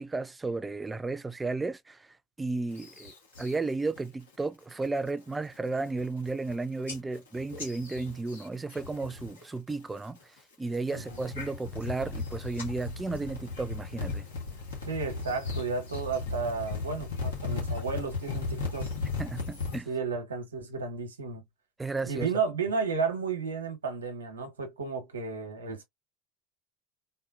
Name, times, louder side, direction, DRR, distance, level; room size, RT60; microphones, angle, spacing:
voice 1, 0.0-2.1 2.4-3.1 3.4-10.2 10.6-14.2 19.2-19.9 21.8-22.3, right 3 dB, 15° right, 0.5 m, -33 dB
sound 1, 2.7-3.6 4.0-4.3 4.7-5.1 5.5-5.6 5.9-6.5 6.9-9.4 9.7-10.2 10.7-19.8, left 4 dB, 80° left, 1.4 m, -36 dB
voice 2, 10.9-11.3 14.8-18.9 19.9-21.4 22.1-25.8, right 5 dB, 85° right, 1.1 m, -33 dB
4.2 x 2.2 x 2.5 m
hypercardioid pair, 70°, 0 cm